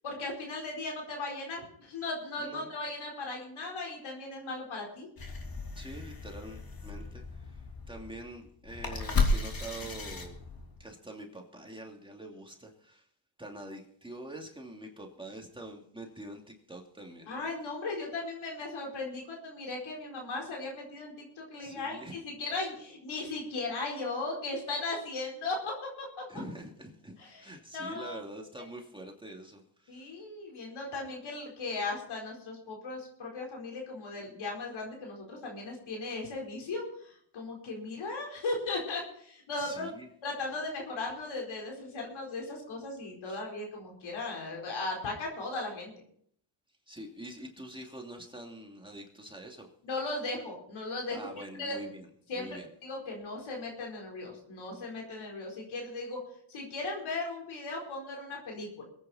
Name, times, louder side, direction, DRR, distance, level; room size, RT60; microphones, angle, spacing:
voice 1, 0.0-5.1 17.3-26.1 27.2-28.2 29.9-39.9 40.2-45.9 49.8-51.2 51.6-51.7 52.3-56.2 56.5-58.9, left 3 dB, 85° left, 0 dB, 4.6 m, -37 dB
voice 2, 2.4-2.7 5.7-10.4 10.8-13.1 13.4-17.3 21.6-22.2 26.3-30.1 39.6-40.1 43.2-43.4 46.9-49.7 51.1-52.1 52.3-52.7, right 1 dB, 10° right, 0 dB, 2.8 m, -45 dB
sound 1, 5.2-10.8, left 3 dB, 50° left, 3.1 m, -34 dB
22.5 x 9.3 x 4.3 m, 0.63 s
cardioid pair, 90°, 46 cm